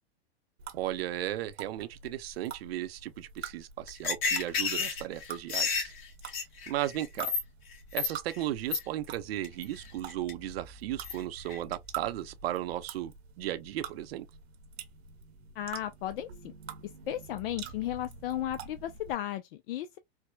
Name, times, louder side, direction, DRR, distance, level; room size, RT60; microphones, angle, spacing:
sound 1, 0.6-19.1, right 6 dB, 90° right, 1.1 m, -47 dB
voice 1, 0.7-5.9 6.7-7.3 7.9-14.3, right 13 dB, 70° right, 0.7 m, -35 dB
sound 2, 3.9-7.4 7.7-8.4 8.7-8.8 9.4-9.6 10.1-10.3 11.0-11.2 11.5-11.7, left 5 dB, 40° left, 1.6 m, -30 dB
voice 2, 15.5-16.5 16.8-20.0, left 12 dB, 65° left, 0.5 m, -35 dB
4.6 x 2.2 x 2.3 m
hypercardioid pair, 115°, 31 cm